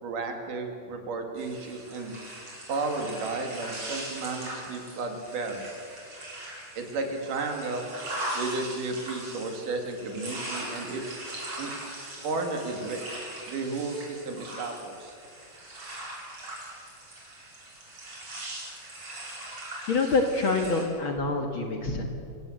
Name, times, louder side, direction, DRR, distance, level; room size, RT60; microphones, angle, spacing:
voice 1, 0.0-2.1 2.7-5.6 6.8-7.9 8.4-11.0 11.6-11.7 12.2-13.0 13.5-15.2, right 3 dB, 75° right, 4 dB, 3.8 m, -33 dB
sound 1, 1.4-20.8, right 1 dB, 45° right, 5.8 m, -40 dB
voice 2, 19.9-22.0, left 3 dB, 45° left, 3 dB, 2.1 m, -26 dB
26.0 x 16.5 x 7.9 m, 2.4 s
omnidirectional pair, 3.7 m